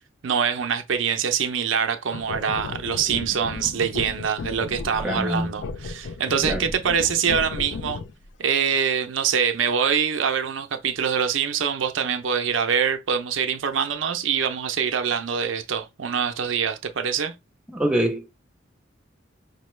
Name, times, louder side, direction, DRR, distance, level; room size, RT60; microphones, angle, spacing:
voice 1, 0.2-8.0 8.4-17.3, right 7 dB, 80° right, 0.5 m, -24 dB
sound 1, 2.1-8.3, left 4 dB, 65° left, 0.4 m, -34 dB
voice 2, 5.0-5.5 6.4-6.7 17.7-18.3, right 1 dB, 5° right, 0.8 m, -24 dB
5.2 x 2.2 x 3.1 m
head